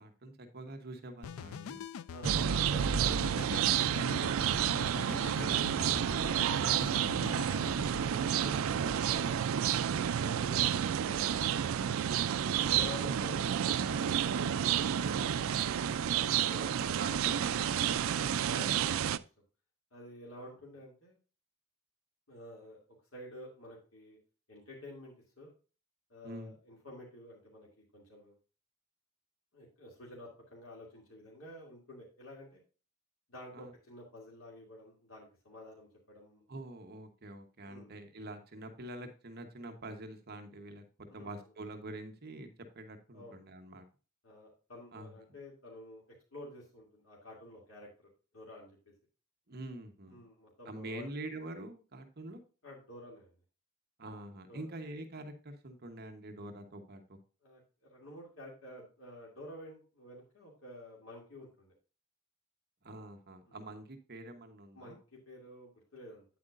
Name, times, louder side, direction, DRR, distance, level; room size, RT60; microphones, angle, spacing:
voice 1, 0.0-1.8 4.2-7.6 15.0-15.6 16.8-18.3 20.4-20.5 26.2-26.5 33.5-33.7 36.5-40.8 41.1-43.9 44.9-45.2 49.5-50.2 50.6-52.4 54.0-57.2 62.8-65.0, right 1 dB, 50° right, 6 dB, 1.1 m, -46 dB
sound 1, 1.2-8.1, left 7 dB, 85° left, 0.4 m, -44 dB
voice 2, 2.1-3.6 8.0-9.7 10.2-12.3 12.6-14.4 16.4-17.0 18.5-19.2 19.9-21.2 22.3-22.8 23.1-24.2 24.5-25.5 26.1-28.3 29.5-32.6 33.3-36.4 37.6-38.0 41.1-41.4 43.1-43.4 44.2-46.0 46.3-48.8 50.0-51.0 52.6-53.3 54.5-54.7 57.4-61.7 63.5-63.6 64.7-66.2, left 1 dB, 70° left, -3 dB, 2.7 m, -50 dB
sound 2, 2.2-19.2, right 9 dB, 75° right, 0.4 m, -30 dB
9.0 x 8.1 x 2.5 m, 0.35 s
head